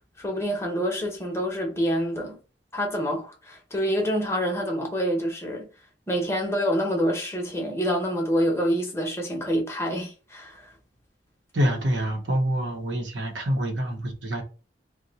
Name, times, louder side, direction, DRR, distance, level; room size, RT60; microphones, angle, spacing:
voice 1, 0.2-2.4 2.7-5.7 6.1-10.7, equal, 15° left, 0.8 m, -27 dB
voice 2, 11.5-14.4, equal, 80° right, 0.8 m, -26 dB
2.8 x 2.1 x 3.9 m
head